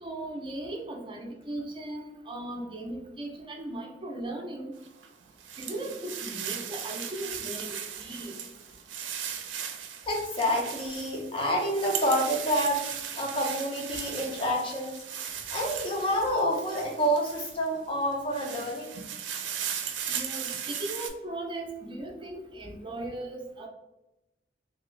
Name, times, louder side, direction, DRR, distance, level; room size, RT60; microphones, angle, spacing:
voice 1, 0.0-4.7 5.6-8.4 20.1-23.7, right 1 dB, 25° right, 1 dB, 0.5 m, -38 dB
sound 1, 4.8-17.7 18.1-21.1, right 8 dB, 90° right, 0.4 m, -37 dB
voice 2, 10.1-15.0 15.5-19.0 20.0-20.1, equal, 30° left, -1 dB, 0.7 m, -28 dB
2.9 x 2.6 x 3.0 m, 0.91 s
head